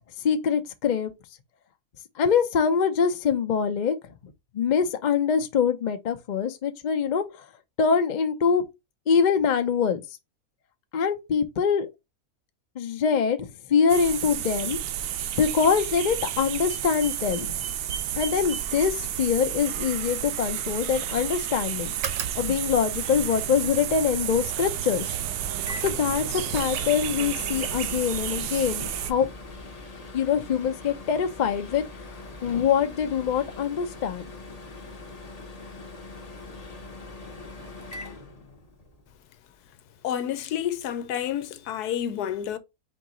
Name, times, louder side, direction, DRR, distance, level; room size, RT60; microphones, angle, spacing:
voice 1, 0.2-1.1 2.2-4.0 4.5-7.4 7.8-8.6 9.1-10.0 10.9-11.9 12.8-14.8 15.4-17.5 18.2-21.9 22.3-25.1 25.8-29.3 30.1-34.3, left 6 dB, 60° left, 0.4 m, -24 dB
sound 1, 13.9-29.1, right 10 dB, 85° right, 1.1 m, -31 dB
sound 2, 21.9-27.5, right 7 dB, 60° right, 1.0 m, -38 dB
Microwave oven, 25.0-39.0, left 2 dB, 30° left, 0.8 m, -42 dB
voice 2, 40.0-42.6, left 10 dB, 85° left, 1.2 m, -29 dB
4.5 x 3.0 x 3.7 m
omnidirectional pair, 1.7 m